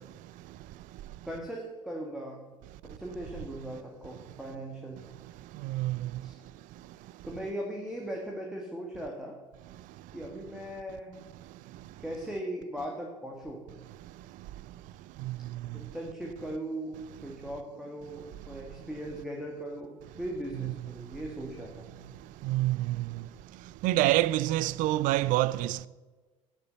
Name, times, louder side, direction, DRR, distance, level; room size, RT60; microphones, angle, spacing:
voice 1, 1.2-2.5 2.8-5.0 6.2-6.4 7.2-9.4 10.1-11.1 12.0-13.6 15.7-22.1, right 1 dB, 5° right, 2.0 m, -39 dB
voice 2, 5.6-6.0 20.6-20.7 22.5-23.0 23.8-25.9, right 16 dB, 50° right, 0.4 m, -26 dB
11.0 x 6.8 x 8.0 m
figure-of-eight pair, 55°, 18 cm